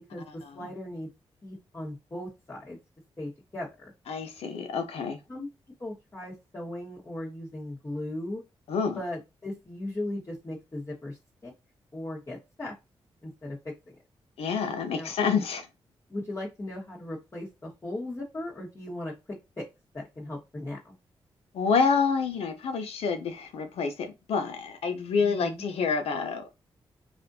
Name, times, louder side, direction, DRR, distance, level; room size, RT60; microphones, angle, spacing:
voice 1, 0.1-1.1 1.4-2.8 3.2-3.9 5.3-5.5 5.8-8.4 8.9-11.2 11.4-11.5 11.9-12.7 13.2-13.6 13.9-14.0 14.9-15.1 16.1-19.1 19.6-19.7 19.9-20.9 25.2-25.6, left 1 dB, 30° left, 1.4 m, -37 dB
voice 2, 4.1-5.2 8.7-9.0 14.4-15.7 21.5-26.5, left 5 dB, 85° left, 0.6 m, -28 dB
4.1 x 2.6 x 2.7 m
cardioid pair, 65°, 10 cm